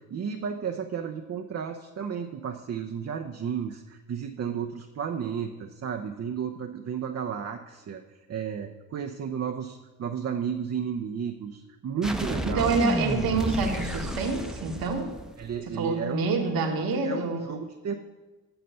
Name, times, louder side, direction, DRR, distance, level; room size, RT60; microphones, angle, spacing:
voice 1, 0.1-8.0 8.3-12.7 15.4-16.3 16.9-17.9, right 7 dB, 40° right, 3 dB, 0.7 m, -33 dB
sound 1, 12.0-15.7, equal, ahead, 0.8 m, -32 dB
voice 2, 12.4-15.1 15.7-17.5, right 4 dB, 60° right, 2 dB, 1.4 m, -27 dB
7.9 x 6.4 x 5.6 m, 1.2 s
supercardioid pair, 60°, 40 cm